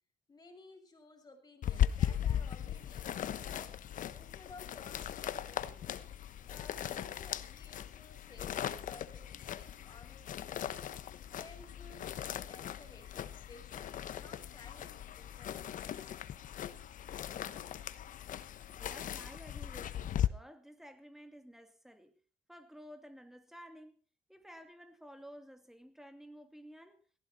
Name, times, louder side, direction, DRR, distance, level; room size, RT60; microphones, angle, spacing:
voice 1, 0.3-3.8 4.1-5.9 6.5-10.9 11.3-15.9, left 3 dB, 25° left, 6.5 m, -57 dB
sound 1, 1.6-20.3, left 10 dB, 60° left, 1.1 m, -38 dB
voice 2, 18.8-22.1 22.5-24.0 24.3-27.0, equal, ahead, 2.5 m, -53 dB
18.5 x 15.5 x 4.3 m
cardioid pair, 100°, 16 cm